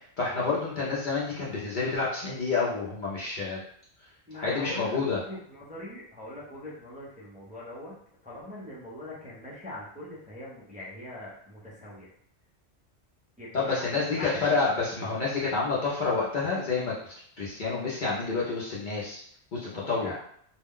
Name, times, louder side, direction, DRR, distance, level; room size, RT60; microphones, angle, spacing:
voice 1, 0.2-3.6 4.4-5.2 13.5-19.2 19.5-20.1, left 4 dB, 50° left, -6 dB, 0.7 m, -29 dB
voice 2, 4.3-7.9 8.2-12.1 13.4-14.6 19.7-20.2, left 1 dB, 10° right, -7 dB, 0.6 m, -42 dB
2.3 x 2.1 x 3.6 m, 0.65 s
omnidirectional pair, 1.2 m